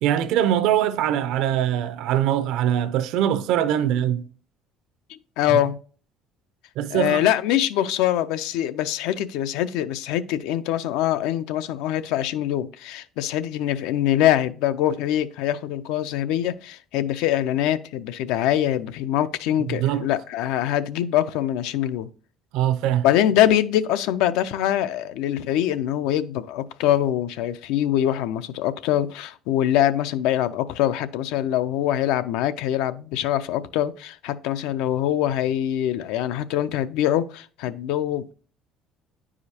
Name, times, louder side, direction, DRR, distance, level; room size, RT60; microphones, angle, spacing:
voice 1, 0.0-4.2 6.8-7.3 19.7-20.1 22.5-23.0, right 11 dB, 70° right, 0.5 m, -22 dB
voice 2, 5.1-5.8 6.9-22.1 23.0-38.3, left 11 dB, 90° left, 0.4 m, -23 dB
9.5 x 4.9 x 2.8 m
cardioid pair, 160°, 0 cm